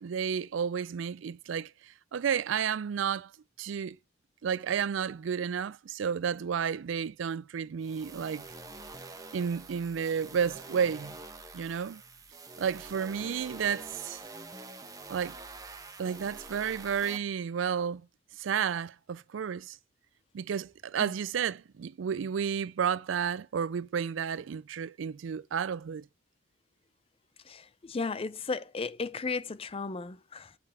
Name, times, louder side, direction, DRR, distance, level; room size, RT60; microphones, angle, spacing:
voice 1, 0.0-3.3 3.6-4.0 4.4-8.4 9.3-11.2 11.5-12.0 12.6-14.2 15.1-15.4 16.0-18.0 18.4-19.8 20.3-26.1, right 7 dB, 70° right, 0.4 m, -31 dB
sound 1, 7.8-17.2, right 3 dB, 20° right, 1.0 m, -46 dB
voice 2, 27.4-30.6, left 4 dB, 30° left, 0.5 m, -35 dB
6.9 x 5.4 x 6.2 m
head